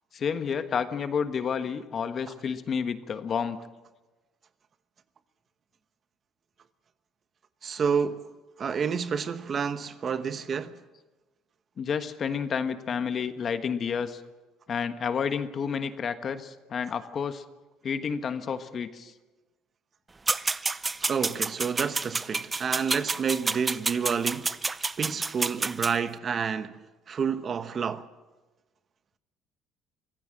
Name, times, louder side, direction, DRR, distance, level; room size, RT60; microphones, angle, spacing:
voice 1, 0.1-3.6 11.8-14.2 14.7-17.4 17.8-19.1, left 6 dB, 40° left, 1.4 m, -30 dB
voice 2, 7.6-8.2 8.6-10.7 21.0-24.5 25.0-26.8 27.1-28.1, right 6 dB, 40° right, 1.0 m, -29 dB
sound 1, 20.3-25.9, right 3 dB, 20° right, 0.6 m, -29 dB
24.5 x 16.0 x 7.6 m
cardioid pair, 110°, 0 cm